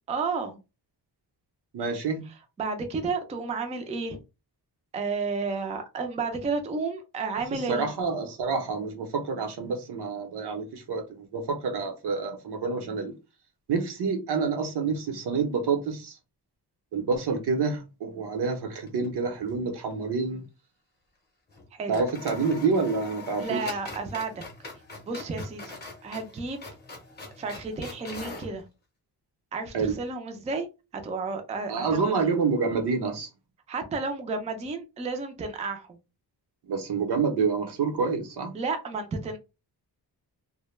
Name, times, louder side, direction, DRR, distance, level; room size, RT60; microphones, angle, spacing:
voice 1, 0.1-0.6 2.6-4.2 4.9-7.9 21.8-22.0 23.4-24.4 25.1-25.8 26.0-26.6 27.4-28.6 29.5-30.7 30.9-32.1 33.7-35.9 38.5-39.4, right 4 dB, 20° right, 0.3 m, -31 dB
voice 2, 1.7-2.2 7.5-13.1 13.7-16.2 16.9-20.4 21.9-23.6 29.7-30.0 31.7-33.3 36.7-38.5, right 4 dB, 75° right, 0.8 m, -28 dB
sound 1, 18.8-19.6 19.9-20.0 21.5-21.7 21.9-28.5, left 3 dB, 25° left, 0.6 m, -42 dB
2.1 x 2.1 x 3.1 m
wide cardioid pair, 155°, 40 cm